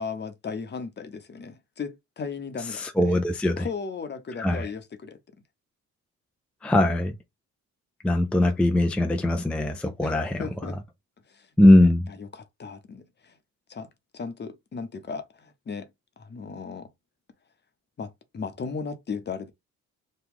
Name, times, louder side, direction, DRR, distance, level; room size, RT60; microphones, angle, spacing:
voice 1, 0.0-3.2 3.6-5.2 8.4-8.5 10.0-10.8 11.3-11.9 12.2-13.3 13.7-13.9 14.1-15.9 16.2-16.9 18.0-19.5, left 5 dB, 35° left, 0.8 m, -36 dB
voice 2, 2.7-3.7 4.4-4.7 6.6-7.2 8.0-10.4 11.6-12.1, left 1 dB, 5° left, 0.4 m, -21 dB
3.0 x 2.3 x 3.5 m
cardioid pair, 90°, 30 cm